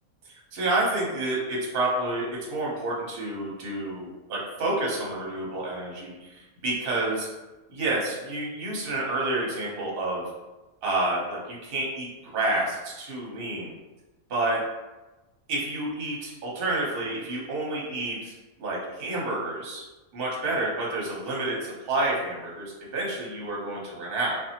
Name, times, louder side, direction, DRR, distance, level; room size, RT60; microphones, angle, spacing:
voice 1, 0.2-7.3 7.7-10.3 10.8-13.7 14.3-14.6 15.5-19.8 20.1-24.4, right 2 dB, 50° right, -4 dB, 0.8 m, -29 dB
2.6 x 2.3 x 2.8 m, 1.1 s
omnidirectional pair, 1.6 m